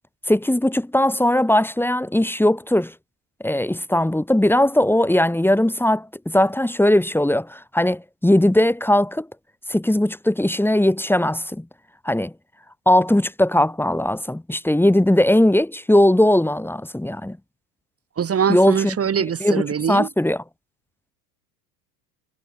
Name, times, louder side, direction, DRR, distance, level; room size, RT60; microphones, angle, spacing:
voice 1, 0.3-2.9 3.4-9.3 9.7-11.7 12.0-12.3 12.9-17.4 18.5-19.0 19.4-19.6 19.9-20.4, left 1 dB, 5° left, 3.7 m, -19 dB
voice 2, 18.2-20.1, right 8 dB, 30° right, 3.4 m, -23 dB
hypercardioid pair, 85°, 49 cm